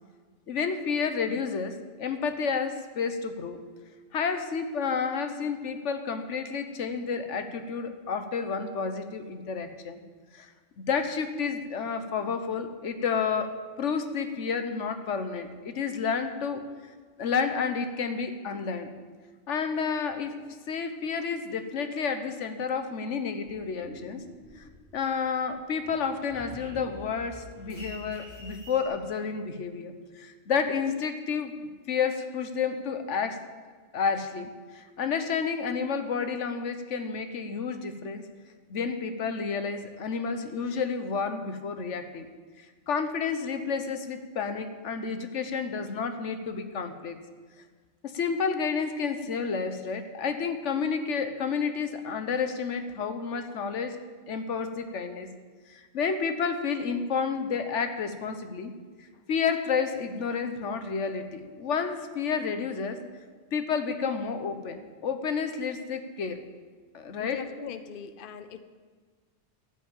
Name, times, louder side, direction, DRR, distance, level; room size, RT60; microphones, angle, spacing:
voice 1, 0.5-3.6 4.1-10.0 10.3-10.5 10.8-16.6 17.2-18.9 19.5-20.4 20.7-24.2 24.6-24.7 24.9-31.5 31.9-33.4 33.9-38.2 38.7-42.3 42.6-47.2 48.1-54.0 54.3-55.3 55.7-58.7 59.3-63.0 63.5-66.4 66.9-67.4, left 5 dB, 80° left, 8 dB, 1.3 m, -30 dB
sound 1, 23.4-25.1 25.5-28.9, left 2 dB, 15° left, 4.2 m, -46 dB
voice 2, 67.2-68.6, left 7 dB, 55° left, 11 dB, 0.8 m, -40 dB
13.5 x 6.3 x 8.8 m, 1.5 s
omnidirectional pair, 1.2 m